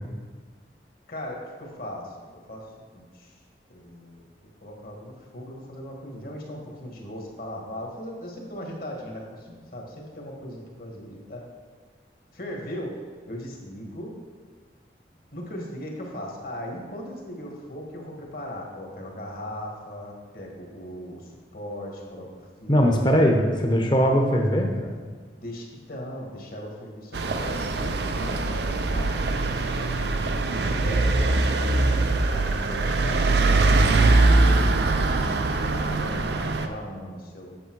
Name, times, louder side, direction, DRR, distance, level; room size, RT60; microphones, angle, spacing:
voice 1, 1.1-3.4 3.7-11.5 12.3-13.0 13.3-14.1 15.3-22.3 22.6-23.3 25.3-30.0 30.6-31.3 32.3-33.6 35.8-37.6, equal, 50° left, 0 dB, 1.6 m, -38 dB
voice 2, 22.7-25.0, equal, 25° left, 2 dB, 0.9 m, -20 dB
sound 1, 27.1-36.7, right 2 dB, 65° right, 0.5 m, -22 dB
8.5 x 6.6 x 4.6 m, 1.5 s
head